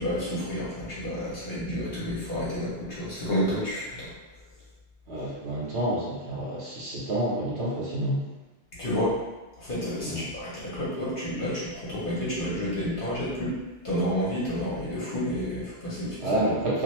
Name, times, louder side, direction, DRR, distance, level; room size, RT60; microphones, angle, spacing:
voice 1, 0.0-4.1 8.8-9.2 9.6-13.5 13.8-16.4, equal, 50° left, -8 dB, 1.0 m, -30 dB
voice 2, 5.1-8.2 10.0-10.3 16.2-16.8, right 1 dB, 65° right, -5 dB, 1.0 m, -28 dB
2.5 x 2.4 x 3.0 m, 1.1 s
omnidirectional pair, 1.2 m